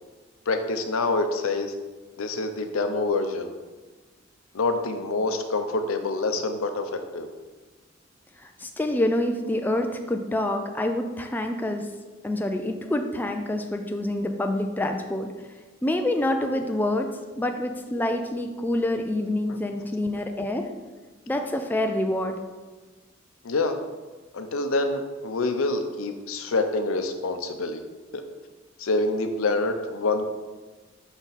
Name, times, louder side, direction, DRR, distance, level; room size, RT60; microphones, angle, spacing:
voice 1, 0.5-1.7 2.2-3.5 4.5-7.3 23.4-23.8 24.3-27.8 28.1-28.2 28.8-30.3, left 3 dB, 85° left, 7 dB, 0.6 m, -26 dB
voice 2, 8.4-11.9 12.2-15.3 15.8-17.1 17.3-20.7 21.3-22.4, left 1 dB, 10° left, 4 dB, 0.3 m, -27 dB
5.9 x 4.2 x 4.0 m, 1.3 s
head